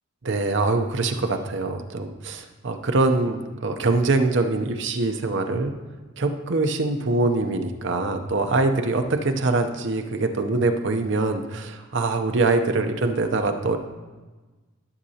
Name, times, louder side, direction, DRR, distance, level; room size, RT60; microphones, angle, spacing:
voice 1, 0.2-5.8 6.2-13.8, right 3 dB, 55° right, 6 dB, 0.6 m, -23 dB
12.5 x 6.5 x 2.8 m, 1.3 s
head